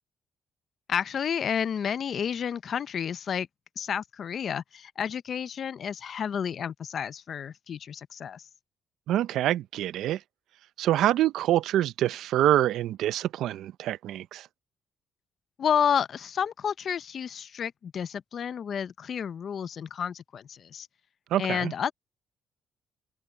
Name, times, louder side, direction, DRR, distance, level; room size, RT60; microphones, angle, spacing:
voice 1, 0.9-3.5 3.8-8.4 15.6-20.9 21.4-21.9, left 8 dB, 55° left, 0.6 m, -30 dB
voice 2, 9.1-10.2 10.8-14.5 21.3-21.7, right 13 dB, 80° right, 0.5 m, -26 dB
cardioid pair, 90°, 0 cm